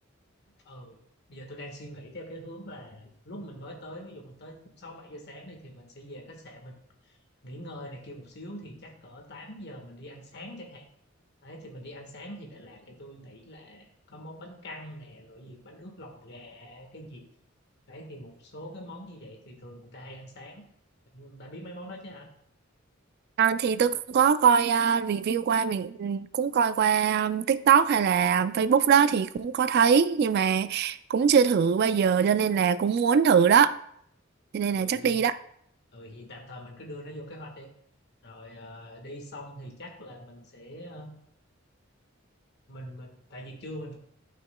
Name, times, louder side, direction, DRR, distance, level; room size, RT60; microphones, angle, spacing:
voice 1, 0.6-1.0 1.3-7.2 7.4-10.9 11.4-17.3 17.9-20.6 21.1-22.3 34.7-35.2 35.9-37.7 38.2-41.1 42.7-44.0, equal, 55° left, 1.5 m, -44 dB
voice 2, 23.4-33.7 34.5-35.4, right 7 dB, 55° right, 0.3 m, -22 dB
12.0 x 5.9 x 2.2 m
head